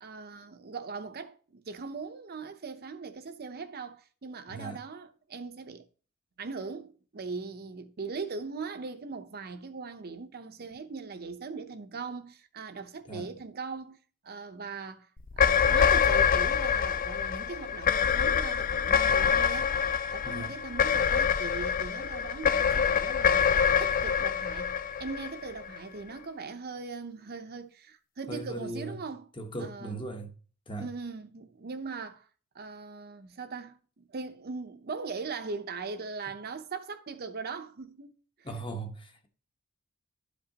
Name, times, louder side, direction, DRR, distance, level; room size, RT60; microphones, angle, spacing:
voice 1, 0.0-5.8 6.4-14.0 14.2-15.1 15.4-19.8 20.1-23.5 23.8-29.3 29.6-30.0 30.8-32.3 32.5-38.1 38.4-38.5, right 4 dB, 50° right, 0.7 m, -40 dB
voice 2, 4.5-4.8 13.1-13.3 20.2-20.5 28.3-29.0 29.4-30.3 30.7-30.9 38.4-39.3, right 2 dB, 25° left, 1.1 m, -38 dB
sound 1, 15.3-25.8, left 7 dB, 40° left, 0.4 m, -25 dB
12.0 x 5.1 x 2.9 m
head